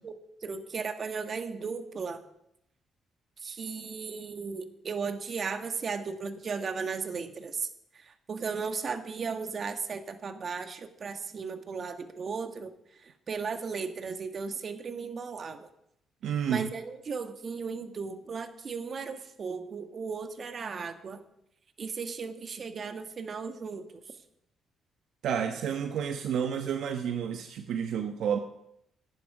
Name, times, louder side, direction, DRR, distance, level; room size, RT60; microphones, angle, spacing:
voice 1, 0.4-2.2 3.4-7.7 7.9-15.7 16.5-21.2 21.8-23.9, right 5 dB, 45° right, 8 dB, 1.6 m, -36 dB
voice 2, 16.2-16.7 25.2-28.4, right 8 dB, 75° right, 7 dB, 1.0 m, -30 dB
16.5 x 11.0 x 4.9 m, 0.77 s
cardioid pair, 90°, 0 cm